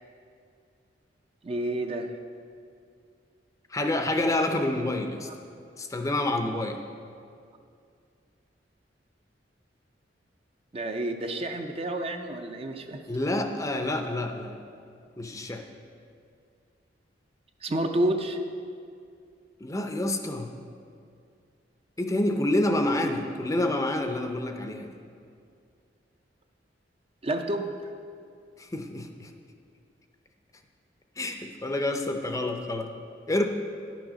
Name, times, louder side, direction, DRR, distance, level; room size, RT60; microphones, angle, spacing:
voice 1, 1.4-2.1 5.3-5.4 10.7-13.0 17.6-18.4 27.2-27.7, right 1 dB, 35° right, 5 dB, 0.5 m, -29 dB
voice 2, 3.7-5.3 5.8-6.8 13.1-14.5 15.2-15.6 19.6-20.5 22.0-24.9 28.6-29.3 31.2-32.9 33.3-33.5, left 1 dB, 20° left, 5 dB, 0.5 m, -28 dB
10.5 x 6.2 x 5.0 m, 2.3 s
head